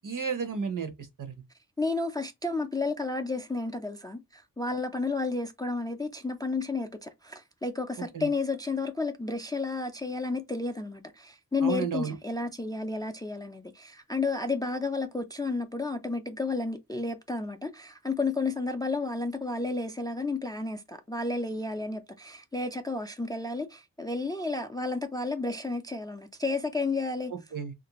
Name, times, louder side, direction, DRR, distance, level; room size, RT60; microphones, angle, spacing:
voice 1, 0.0-1.4 8.1-8.3 11.6-12.2 27.3-27.7, right 6 dB, 60° right, 0.8 m, -33 dB
voice 2, 1.8-27.3, left 3 dB, 10° left, 0.3 m, -32 dB
3.1 x 2.5 x 2.9 m
wide cardioid pair, 120°, 36 cm